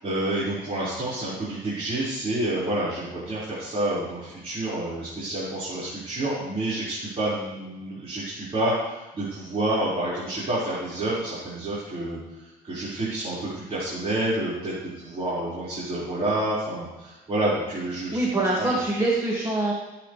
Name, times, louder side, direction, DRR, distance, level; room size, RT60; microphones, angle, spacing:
voice 1, 0.0-18.2 18.6-18.8, right 1 dB, 35° right, -9 dB, 5.1 m, -29 dB
voice 2, 18.1-19.7, right 2 dB, 20° right, -3 dB, 2.3 m, -24 dB
19.5 x 8.8 x 3.4 m, 1.1 s
cardioid pair, 110°, 17 cm